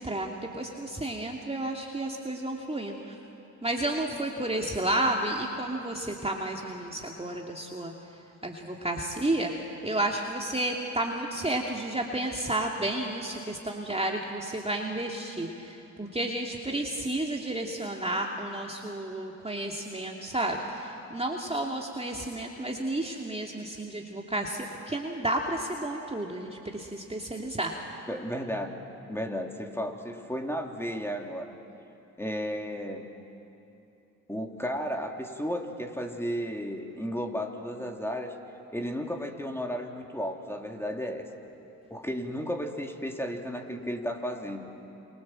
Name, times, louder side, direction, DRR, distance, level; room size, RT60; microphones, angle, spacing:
voice 1, 0.0-3.1 3.6-7.9 8.4-9.5 9.8-27.7, right 1 dB, 15° right, 0 dB, 2.7 m, -31 dB
voice 2, 28.1-28.8 29.1-31.5 32.2-33.1 34.3-38.3 38.7-41.3 41.9-44.7, equal, 5° left, 2 dB, 3.6 m, -33 dB
28.0 x 27.5 x 7.7 m, 2.9 s
hypercardioid pair, 45°, 44 cm